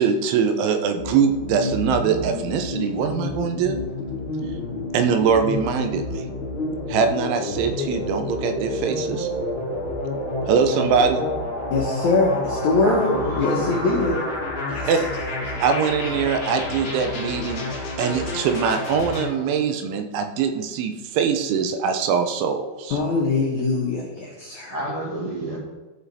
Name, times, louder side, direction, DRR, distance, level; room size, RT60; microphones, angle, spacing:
voice 1, 0.0-3.8 4.9-6.2 6.9-9.3 10.5-11.2 14.9-15.0 15.6-17.7 18.0-23.0, right 6 dB, 85° right, 3.2 m, -22 dB
sound 1, 1.0-19.3, left 2 dB, 35° left, 2.4 m, -29 dB
voice 2, 11.7-14.2 14.7-14.9 15.5-15.6 22.9-24.8, left 3 dB, 80° left, 1.6 m, -22 dB
voice 3, 12.8-13.9 24.7-25.6, right 1 dB, 40° right, 2.0 m, -29 dB
14.5 x 5.6 x 4.2 m
omnidirectional pair, 5.3 m